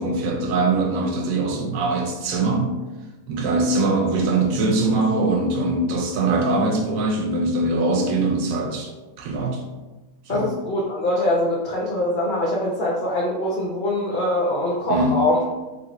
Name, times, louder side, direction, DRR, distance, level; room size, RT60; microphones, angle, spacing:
voice 1, 0.0-2.8 3.3-8.9 9.2-9.6 10.3-10.5 14.9-15.2, right 2 dB, 75° right, 2 dB, 1.0 m, -22 dB
voice 2, 10.3-15.4, left 1 dB, 80° left, -4 dB, 0.4 m, -23 dB
3.3 x 2.4 x 2.9 m, 1.2 s
omnidirectional pair, 1.5 m